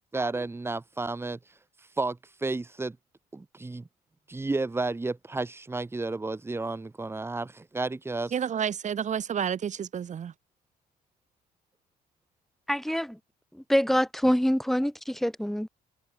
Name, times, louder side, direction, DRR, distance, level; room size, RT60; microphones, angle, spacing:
voice 1, 0.1-1.4 2.0-3.0 3.3-3.9 4.3-8.3, right 3 dB, 15° right, 2.5 m, -32 dB
voice 2, 8.3-10.3, right 8 dB, 45° right, 4.4 m, -30 dB
voice 3, 12.7-13.2 13.5-15.7, equal, ahead, 2.7 m, -25 dB
cardioid pair, 110°, 17 cm